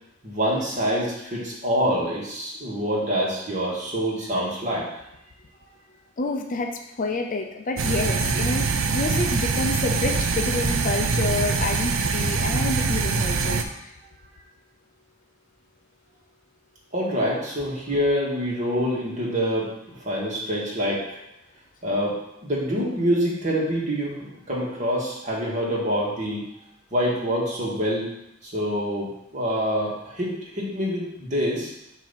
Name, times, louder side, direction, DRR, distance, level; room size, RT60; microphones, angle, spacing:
voice 1, 0.2-4.9 16.9-19.7 20.0-21.2 21.8-26.4 26.9-28.1 28.4-31.7, equal, 40° right, -5 dB, 1.9 m, -26 dB
voice 2, 6.2-13.9, left 3 dB, 40° left, 4 dB, 0.6 m, -28 dB
sound 1, 7.8-13.6, right 4 dB, 85° right, 0.6 m, -24 dB
7.3 x 2.9 x 5.8 m, 0.83 s
head